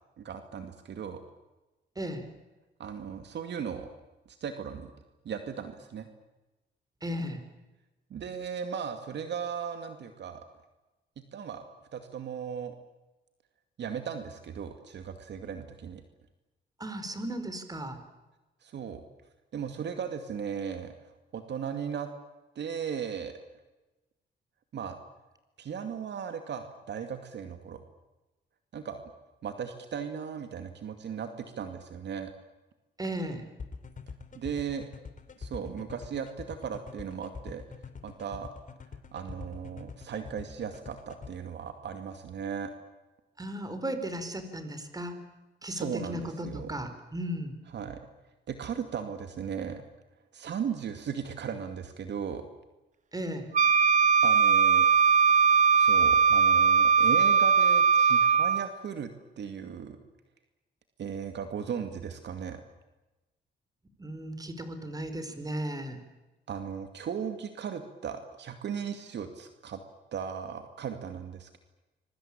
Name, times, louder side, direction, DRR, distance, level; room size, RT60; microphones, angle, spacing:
voice 1, 0.2-1.2 2.8-3.9 4.3-4.9 5.2-6.1 8.1-10.4 11.3-11.6 11.9-12.8 13.8-16.0 18.6-19.0 19.5-20.9 21.3-22.1 22.6-23.3 24.7-25.0 25.6-27.8 28.7-29.0 29.4-32.3 34.3-34.9 35.4-37.6 38.0-38.5 39.1-42.7 45.6-46.8 47.7-48.0 48.5-49.8 50.3-52.5 54.2-54.9 55.3-55.4 55.8-60.0 61.0-62.6 66.5-69.8 70.1-71.6, right 7 dB, 60° right, 8 dB, 2.4 m, -37 dB
voice 2, 2.0-2.3 7.0-7.4 16.8-18.0 33.0-33.4 43.4-45.2 45.6-47.5 53.1-53.5 64.0-66.0, right 1 dB, 20° right, 9 dB, 4.9 m, -35 dB
sound 1, 33.6-41.3, left 5 dB, 40° left, 3.3 m, -44 dB
Wind instrument woodwind instrument, 53.5-58.7, right 6 dB, 40° right, 1.1 m, -21 dB
26.0 x 23.5 x 8.8 m, 1.1 s
cardioid pair, 90°, 20 cm